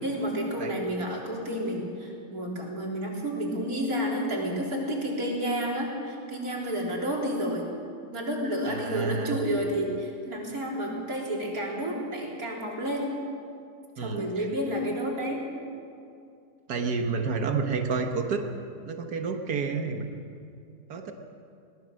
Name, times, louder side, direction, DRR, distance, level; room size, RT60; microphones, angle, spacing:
voice 1, 0.0-7.7 8.1-13.1 14.0-15.4, equal, 65° right, -2 dB, 4.2 m, -30 dB
voice 2, 8.7-9.4 14.0-14.5 16.7-18.5 18.9-20.1 20.9-21.1, right 5 dB, 85° right, 5 dB, 1.8 m, -30 dB
22.0 x 18.0 x 6.5 m, 2.5 s
omnidirectional pair, 1.7 m